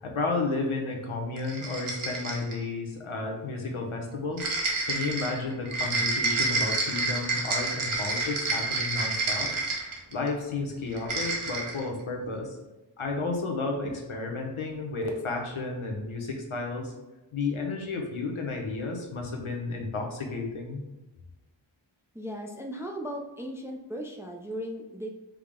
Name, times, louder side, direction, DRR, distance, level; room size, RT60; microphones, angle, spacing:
voice 1, 0.0-4.4 4.9-9.5 10.1-12.6 13.0-16.9 17.3-20.8, left 3 dB, 80° left, 1 dB, 0.8 m, -32 dB
sound 1, 1.4-2.6 4.4-10.3 10.9-11.8, right 3 dB, 85° right, 0.8 m, -29 dB
voice 2, 22.1-25.1, equal, 5° right, 2 dB, 0.3 m, -37 dB
4.7 x 2.0 x 3.6 m, 1.0 s
wide cardioid pair, 65°, 48 cm